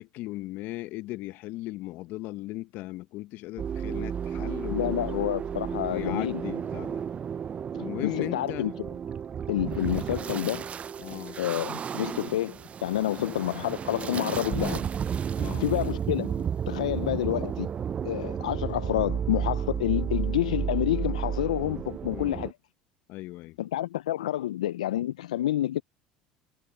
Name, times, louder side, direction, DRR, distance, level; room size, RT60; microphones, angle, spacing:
voice 1, 0.0-5.0 5.8-7.0 7.8-8.7 11.0-11.4 13.0-13.3 15.3-15.7 22.1-22.4 23.1-23.6, left 18 dB, 65° left, 1.3 m, -37 dB
sound 1, 3.6-22.5, right 8 dB, 35° right, 0.5 m, -32 dB
voice 2, 4.7-6.4 7.7-8.7 9.5-10.7 11.4-14.9 15.6-17.7 18.0-22.5 23.6-25.8, left 13 dB, 85° left, 0.4 m, -29 dB
hypercardioid pair, 75°, 4 cm